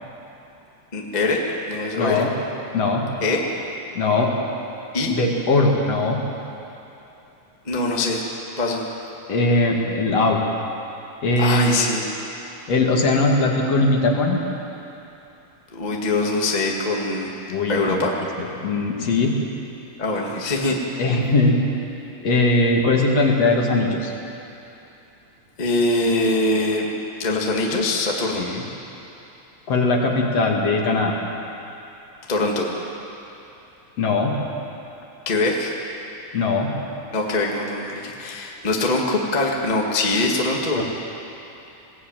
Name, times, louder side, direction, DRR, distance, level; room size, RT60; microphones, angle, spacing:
voice 1, 0.9-1.4 1.7-2.2 3.2-3.4 4.9-5.2 7.6-8.2 8.6-8.8 11.4-12.0 15.7-17.3 17.7-18.1 20.0-20.8 25.6-26.9 27.2-28.4 32.3-32.7 35.2-35.7 37.1-40.8, left 2 dB, 20° left, -1 dB, 1.4 m, -22 dB
voice 2, 2.0-2.3 2.7-3.1 3.9-4.3 5.1-6.2 9.3-10.4 11.2-11.9 12.7-14.4 17.5-18.0 18.4-19.4 21.0-21.6 22.2-24.1 28.3-28.6 29.7-31.1 34.0-34.3 36.3-36.7 40.7-40.8, left 2 dB, 55° left, 0 dB, 3.0 m, -20 dB
21.5 x 16.0 x 9.1 m, 2.9 s
omnidirectional pair, 3.7 m